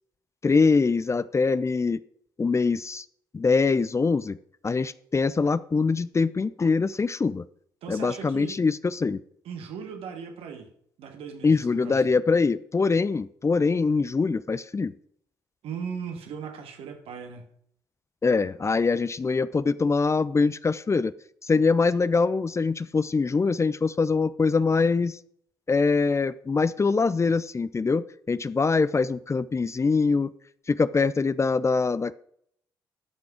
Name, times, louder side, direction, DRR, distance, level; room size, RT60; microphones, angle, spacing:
voice 1, 0.4-2.0 2.4-3.0 3.3-4.4 4.6-7.4 7.9-9.2 11.4-14.9 18.2-21.1 21.4-25.2 25.7-30.3 30.7-32.1, left 4 dB, 30° left, 0.5 m, -23 dB
voice 2, 7.8-8.6 9.4-10.7 11.0-12.0 15.6-17.5, right 6 dB, 70° right, 1.7 m, -38 dB
13.5 x 6.0 x 5.0 m
hypercardioid pair, 45°, 10 cm